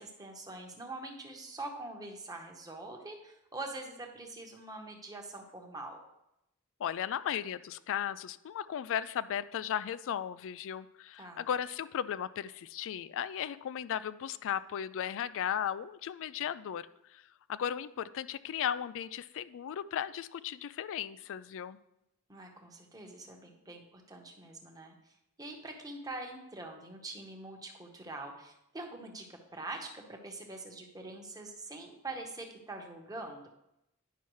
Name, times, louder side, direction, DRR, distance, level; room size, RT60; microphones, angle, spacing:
voice 1, 0.0-6.0 11.2-11.4 22.3-25.1 25.4-33.5, right 2 dB, 15° right, 2 dB, 1.0 m, -44 dB
voice 2, 6.8-16.9 17.1-17.2 17.5-21.8, left 9 dB, 60° left, 16 dB, 0.3 m, -36 dB
10.0 x 5.7 x 3.1 m, 0.85 s
head